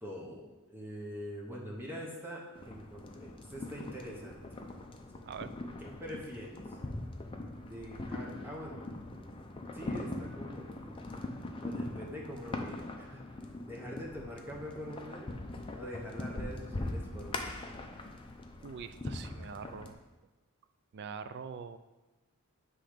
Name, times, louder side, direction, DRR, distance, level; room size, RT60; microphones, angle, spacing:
voice 1, 0.0-4.4 5.2-5.3 5.8-6.6 7.7-8.8 9.7-11.1 11.6-13.2 13.7-15.3 15.7-17.6, equal, 10° right, -3 dB, 0.9 m, -44 dB
sound 1, 2.5-19.9, left 2 dB, 25° left, 0.5 m, -42 dB
voice 2, 18.6-20.0 20.9-21.8, right 6 dB, 50° right, 11 dB, 0.3 m, -43 dB
7.7 x 3.2 x 5.0 m, 1.1 s
head